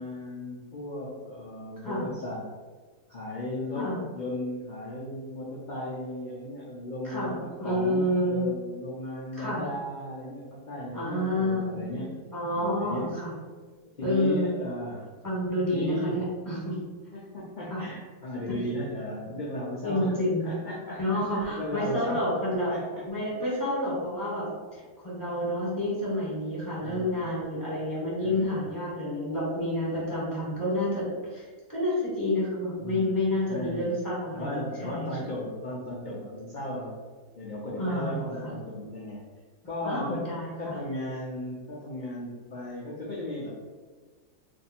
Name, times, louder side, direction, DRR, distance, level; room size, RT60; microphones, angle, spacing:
voice 1, 0.0-2.4 3.1-12.1 12.5-13.2 14.0-15.1 15.7-16.2 17.1-20.2 20.4-22.3 22.7-23.0 23.4-23.6 26.8-27.3 28.2-28.6 32.8-33.1 33.5-33.9 34.3-37.0 37.3-39.2 39.7-40.3 40.6-43.6, left 1 dB, 80° left, -5 dB, 0.4 m, -36 dB
voice 2, 7.0-8.5 9.3-9.6 10.9-12.0 12.3-13.3 14.0-14.6 15.2-16.7 17.7-17.8 19.8-20.6 21.0-22.8 23.0-31.0 31.3-31.4 31.7-35.1 37.8-38.2 39.8-40.7, left 1 dB, 15° left, -8 dB, 1.3 m, -29 dB
2.6 x 2.6 x 4.1 m, 1.4 s
omnidirectional pair, 1.7 m